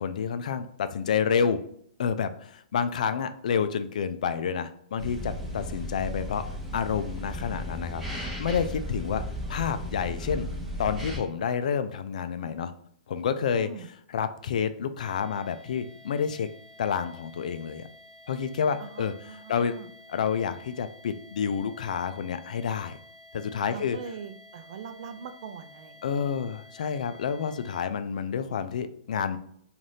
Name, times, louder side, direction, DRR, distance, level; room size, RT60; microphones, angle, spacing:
voice 1, 0.0-1.6 2.0-6.5 6.7-9.2 9.5-10.5 10.8-12.7 13.1-16.5 16.8-17.9 18.3-19.7 20.1-23.0 23.3-24.0 26.0-29.4, left 7 dB, 70° left, 11 dB, 0.3 m, -29 dB
sound 1, 5.0-11.2, equal, 5° right, 0.7 m, -35 dB
voice 2, 13.5-13.9 18.8-19.9 23.7-26.3, right 7 dB, 55° right, 8 dB, 0.4 m, -42 dB
sound 2, 15.0-27.8, left 1 dB, 35° right, 1.2 m, -52 dB
2.6 x 2.5 x 3.3 m, 0.66 s
hypercardioid pair, 140°, 4 cm